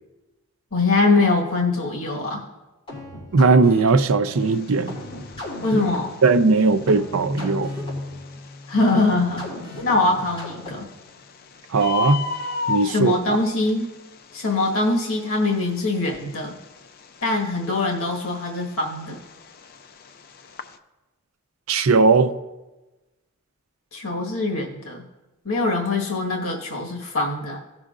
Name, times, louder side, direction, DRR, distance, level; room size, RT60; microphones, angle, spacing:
voice 1, 0.7-2.4 5.6-6.1 8.7-9.4 9.8-10.8 12.8-13.9 14.3-16.5 17.2-19.2 23.9-25.0 25.4-27.6, left 3 dB, 75° left, 1.5 m, -23 dB
sound 1, 2.9-11.1, left 1 dB, 25° left, 3.2 m, -36 dB
voice 2, 3.3-5.0 5.7-5.8 6.2-7.7 11.7-12.2 12.7-13.4 21.7-22.4, right 4 dB, 75° right, 0.5 m, -18 dB
Bird, 4.4-20.8, left 5 dB, 45° left, 0.5 m, -35 dB
17.0 x 6.2 x 2.5 m
head